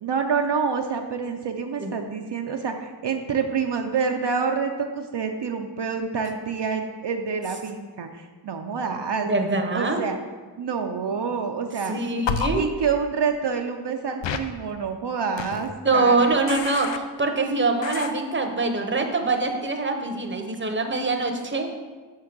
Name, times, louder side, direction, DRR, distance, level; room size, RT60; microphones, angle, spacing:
voice 1, 0.0-9.3 9.7-10.2 10.6-12.0 12.6-16.3, right 5 dB, 70° right, 4 dB, 0.5 m, -27 dB
voice 2, 9.3-10.0 11.9-12.7 15.8-21.7, right 3 dB, 25° right, 5 dB, 0.7 m, -24 dB
sound 1, 12.3-12.5 14.2-14.4 15.4-15.7 16.5-17.0 17.8-18.1, left 7 dB, 80° left, 0.5 m, -28 dB
6.3 x 3.7 x 6.0 m, 1.4 s
wide cardioid pair, 60°, 43 cm